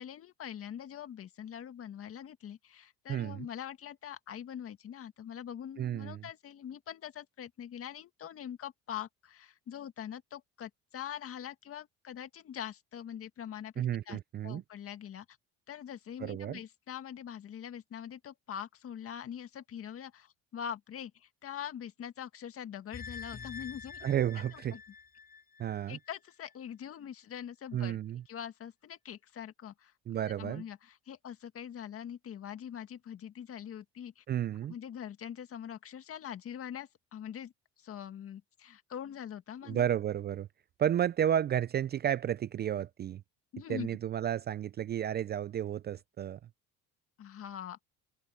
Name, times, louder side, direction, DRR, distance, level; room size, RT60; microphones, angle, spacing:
voice 1, 0.0-15.3 15.7-24.1 24.5-24.8 25.9-28.0 28.3-29.9 30.4-34.2 34.7-37.5 37.8-39.9 43.5-43.9 47.2-47.8, left 9 dB, 45° left, 1.9 m, -43 dB
voice 2, 3.1-3.5 5.8-6.2 13.8-14.6 16.2-16.6 24.0-24.8 25.6-26.0 27.7-28.2 30.1-30.6 34.3-34.7 39.6-40.5 40.8-43.2 43.7-46.4, right 10 dB, 30° right, 0.4 m, -32 dB
sound 1, 22.9-26.1 26.5-26.6, left 5 dB, 30° left, 3.3 m, -47 dB
open air
cardioid pair, 115°, 32 cm